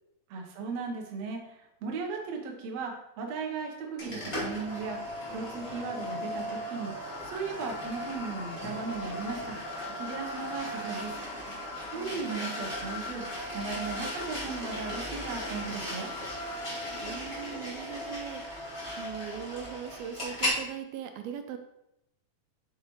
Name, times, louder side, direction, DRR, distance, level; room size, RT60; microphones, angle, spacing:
voice 1, 0.3-6.9 7.2-9.6 10.0-11.2 11.9-13.2 13.5-16.1, right 4 dB, 65° right, 1 dB, 1.8 m, -37 dB
sound 1, 4.0-20.6, left 1 dB, 20° left, 0.9 m, -36 dB
voice 2, 12.0-12.5 17.0-18.6 18.9-21.6, right 9 dB, 85° right, 6 dB, 2.5 m, -40 dB
7.3 x 6.6 x 3.1 m, 0.82 s
omnidirectional pair, 4.4 m